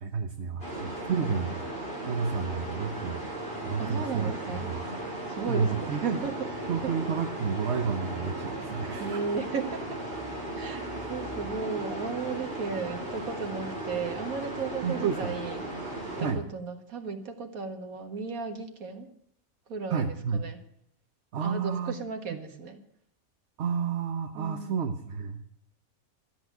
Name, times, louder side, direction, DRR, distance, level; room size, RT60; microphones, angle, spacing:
voice 1, 0.0-1.6 2.1-3.3 3.6-4.8 5.5-6.2 6.7-9.2 11.0-11.1 14.8-15.3 16.2-16.4 19.9-20.5 21.3-22.0 22.3-22.6 23.6-25.4, right 6 dB, 55° right, 6 dB, 1.1 m, -31 dB
sound 1, 0.6-16.3, right 1 dB, 40° left, 4.3 m, -36 dB
voice 2, 3.8-4.7 5.3-6.5 9.0-10.0 10.5-15.6 16.2-19.1 19.7-20.6 21.4-22.8 24.4-24.8, right 5 dB, 70° right, 5 dB, 2.0 m, -35 dB
12.5 x 8.4 x 9.1 m, 0.73 s
omnidirectional pair, 1.5 m